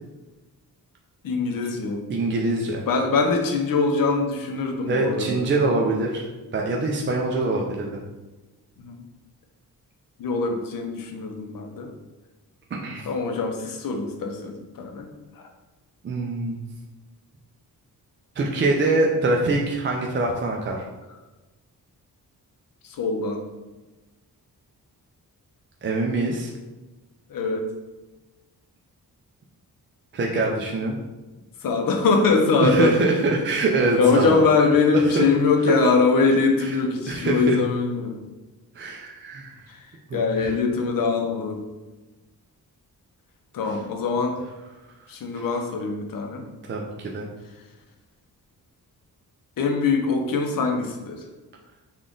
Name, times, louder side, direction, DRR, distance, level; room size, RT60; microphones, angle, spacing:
voice 1, 1.2-2.0 2.9-5.5 8.8-9.0 10.2-11.9 13.1-15.1 22.8-23.4 27.3-27.6 31.6-33.0 34.0-38.2 39.7-39.8 40.1-41.6 43.5-44.4 45.1-46.4 49.6-51.2, left 4 dB, 65° left, 3 dB, 0.7 m, -22 dB
voice 2, 2.1-2.9 4.9-8.0 12.8-13.1 16.0-16.6 18.4-20.8 25.8-26.5 30.1-31.0 32.6-34.5 34.9-35.3 36.6-36.8 37.1-37.6 38.7-39.7 40.1-40.5 43.6-43.8 45.3-45.5 46.7-47.3, right 2 dB, 35° right, -1 dB, 0.4 m, -24 dB
3.6 x 2.4 x 3.7 m, 1.1 s
wide cardioid pair, 110°, 37 cm